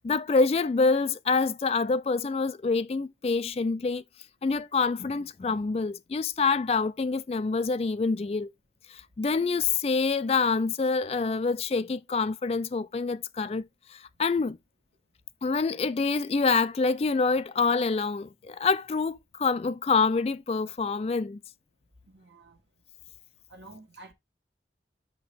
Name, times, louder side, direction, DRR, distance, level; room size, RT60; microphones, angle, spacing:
voice 1, 0.0-4.0 4.4-8.5 8.9-13.7 13.9-14.6 15.4-21.4, left 4 dB, 35° left, 0.3 m, -26 dB
voice 2, 22.1-22.6 23.5-24.1, right 2 dB, 80° right, 1.5 m, -49 dB
5.7 x 5.5 x 3.4 m
head